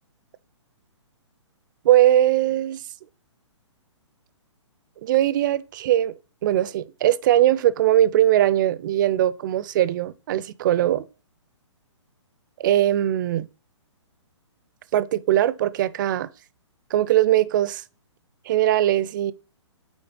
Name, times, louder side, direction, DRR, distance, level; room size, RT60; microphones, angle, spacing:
voice 1, 1.8-2.8 5.0-6.1 6.4-11.1 12.6-13.5 14.9-16.3 16.9-17.8 18.5-19.3, right 12 dB, 40° right, 0.4 m, -20 dB
8.8 x 3.1 x 3.8 m
hypercardioid pair, 140°, 16 cm